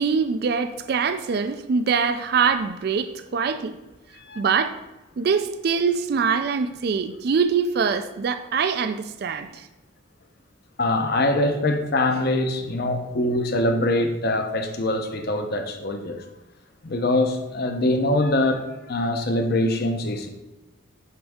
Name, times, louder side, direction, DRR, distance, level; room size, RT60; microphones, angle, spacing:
voice 1, 0.0-3.8 4.4-4.7 5.2-9.7, right 5 dB, 50° right, 0.3 m, -23 dB
voice 2, 4.1-4.4 10.8-16.2 16.8-20.3, left 1 dB, 50° left, 0.7 m, -23 dB
10.5 x 3.5 x 3.6 m
head